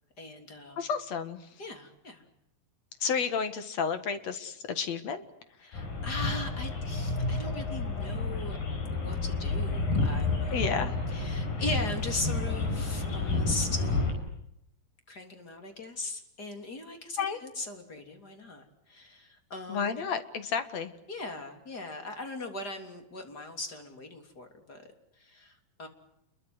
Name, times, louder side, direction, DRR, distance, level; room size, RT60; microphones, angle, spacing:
voice 1, 0.2-0.9 1.6-2.2 5.6-8.6 8.9-10.8 11.1-14.3 15.1-20.0 21.1-24.9 25.2-25.9, left 2 dB, 30° left, 5 dB, 3.6 m, -39 dB
voice 2, 0.8-1.4 3.0-5.3 10.5-11.0 17.2-17.4 19.7-20.9, left 6 dB, 55° left, 10 dB, 2.5 m, -31 dB
sound 1, 5.7-14.1, left 3 dB, 80° left, 7.1 m, -30 dB
29.0 x 22.5 x 7.9 m, 0.78 s
omnidirectional pair, 4.0 m